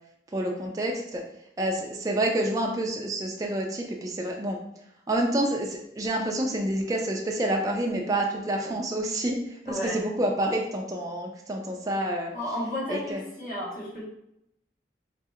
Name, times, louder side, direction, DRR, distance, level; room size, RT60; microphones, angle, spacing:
voice 1, 0.3-1.2 1.6-4.6 5.1-12.3 12.9-13.2, right 1 dB, 20° right, 0 dB, 0.3 m, -28 dB
voice 2, 9.7-10.0 12.3-14.0, left 1 dB, 50° left, -6 dB, 1.2 m, -33 dB
3.9 x 2.7 x 2.4 m, 0.78 s
head